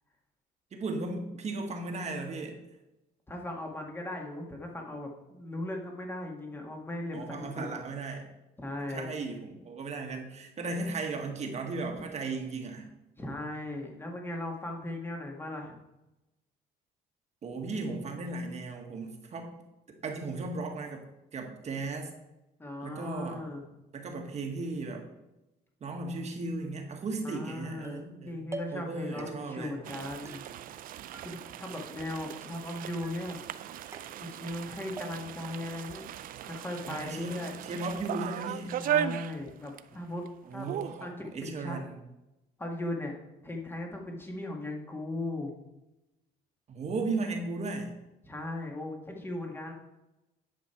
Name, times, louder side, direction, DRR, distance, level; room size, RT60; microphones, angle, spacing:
voice 1, 0.7-2.6 7.1-8.3 8.9-12.9 17.4-19.5 19.9-22.1 22.8-23.4 23.9-25.1 25.8-28.4 28.7-29.8 36.9-38.8 40.4-42.0 46.7-47.9, right 3 dB, 40° right, 2 dB, 1.6 m, -36 dB
voice 2, 3.3-7.8 8.6-9.1 13.2-15.8 22.6-23.6 27.2-30.5 31.2-33.4 34.2-36.1 36.4-37.5 38.8-40.3 40.5-41.8 42.6-43.2 43.4-45.5 48.2-49.7, left 1 dB, 15° left, 1 dB, 1.8 m, -38 dB
sound 1, 27.8-28.2 28.5-28.9 29.2-29.7 30.3-30.9 31.1-31.8 32.1-32.6 33.0-33.5 33.9-34.6 35.0-35.5, right 3 dB, 15° right, 0.7 m, -46 dB
sound 2, 29.8-40.0 40.2-40.3 40.6-41.0, right 11 dB, 55° right, 0.5 m, -37 dB
10.5 x 5.3 x 4.4 m, 0.95 s
cardioid pair, 110°, 17 cm